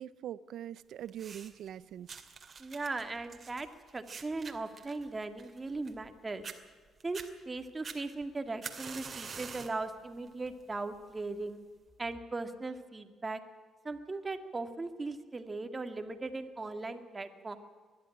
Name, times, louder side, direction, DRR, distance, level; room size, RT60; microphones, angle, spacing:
voice 1, 0.0-2.3, right 10 dB, 75° right, 18 dB, 0.6 m, -43 dB
sound 1, 1.1-1.7 2.1-6.1 6.4-6.6 7.0-7.3 7.8-9.8 10.3-10.6 11.4-11.5, right 5 dB, 45° right, 2.4 m, -45 dB
voice 2, 2.6-3.7 3.9-6.4 7.0-7.2 7.5-11.6 12.0-13.4 13.8-17.6, right 3 dB, 25° right, 8 dB, 2.0 m, -38 dB
20.5 x 12.5 x 9.9 m, 1.5 s
cardioid pair, 90°, 0 cm